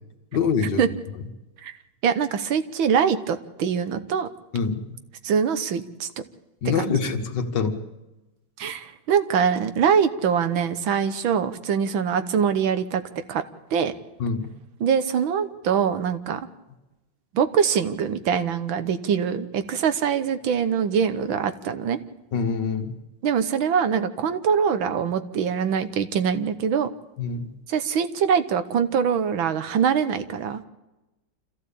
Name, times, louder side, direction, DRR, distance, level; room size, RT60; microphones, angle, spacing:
voice 1, 0.3-0.8 4.5-5.0 6.6-7.8 14.2-14.5 22.3-22.9 27.2-27.5, left 5 dB, 65° left, 6 dB, 2.3 m, -25 dB
voice 2, 2.0-4.3 5.2-6.1 6.8-6.9 8.6-13.0 13.3-13.4 13.7-13.9 14.8-16.5 17.3-22.0 23.2-26.9 27.7-30.6, right 7 dB, 85° right, 11 dB, 1.9 m, -23 dB
26.5 x 15.0 x 8.6 m, 1.0 s
omnidirectional pair, 2.1 m